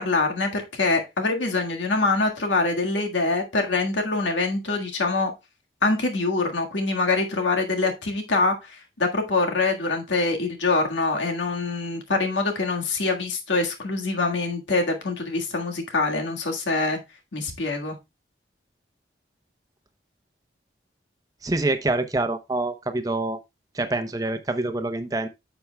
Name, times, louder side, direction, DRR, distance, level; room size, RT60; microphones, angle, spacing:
voice 1, 0.0-5.3 5.8-17.0 17.3-18.0, left 3 dB, 90° left, 1.7 m, -24 dB
voice 2, 21.4-23.4 23.7-25.3, right 2 dB, 20° right, 0.7 m, -26 dB
10.5 x 6.9 x 2.2 m
head